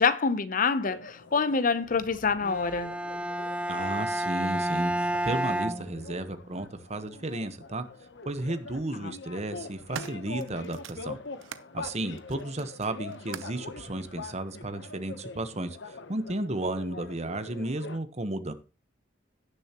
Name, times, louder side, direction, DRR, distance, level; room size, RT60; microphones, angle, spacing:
voice 1, 0.0-2.9 9.0-9.1, left 5 dB, 45° left, 0.7 m, -26 dB
sound 1, 0.9-18.0, left 3 dB, 65° left, 1.0 m, -44 dB
Bowed string instrument, 2.4-6.5, right 1 dB, 5° right, 0.4 m, -31 dB
voice 2, 3.7-7.8 8.2-11.2 11.7-18.5, right 2 dB, 35° right, 1.1 m, -33 dB
sound 2, 7.3-7.4 8.5-8.9 9.4-11.7 12.2-13.7 14.5-14.6, right 6 dB, 90° right, 0.7 m, -43 dB
17.0 x 7.0 x 3.0 m
head